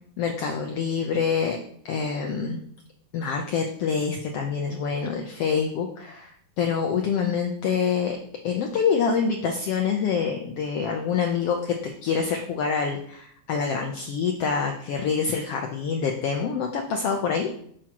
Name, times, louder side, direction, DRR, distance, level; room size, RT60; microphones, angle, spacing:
voice 1, 0.2-1.6 1.8-2.6 3.1-8.2 8.4-17.5, left 6 dB, 70° left, 2 dB, 1.5 m, -26 dB
9.6 x 7.3 x 3.0 m, 0.64 s
omnidirectional pair, 3.3 m